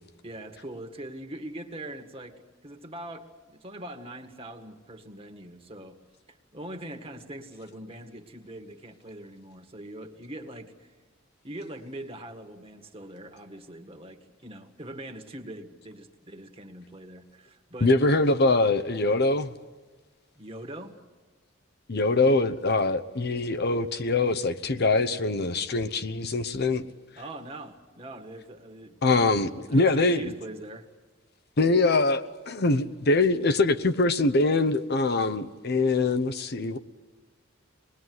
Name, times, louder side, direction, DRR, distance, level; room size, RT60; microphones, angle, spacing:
voice 1, 0.2-6.0 6.3-10.9 11.4-17.9 20.4-21.0 27.2-29.0 29.7-30.9, right 1 dB, 30° right, 1.8 m, -42 dB
voice 2, 17.8-19.5 21.9-26.9 29.0-30.2 31.6-36.8, left 3 dB, 55° left, 0.9 m, -23 dB
26.5 x 21.0 x 9.5 m
head